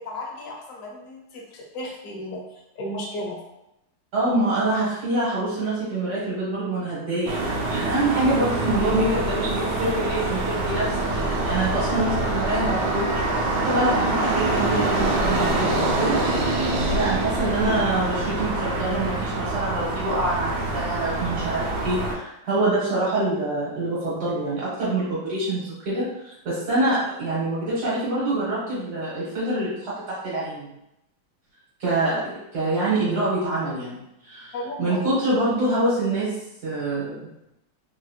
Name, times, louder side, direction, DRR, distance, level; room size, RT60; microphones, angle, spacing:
voice 1, 0.0-3.4 34.5-35.0, left 1 dB, 65° left, -2 dB, 0.8 m, -34 dB
voice 2, 4.1-30.7 31.8-36.3 36.6-37.3, right 2 dB, 55° right, -9 dB, 1.4 m, -26 dB
sound 1, 7.3-22.1, right 2 dB, 75° right, 1.1 m, -25 dB
3.3 x 2.9 x 2.3 m, 0.84 s
omnidirectional pair, 2.1 m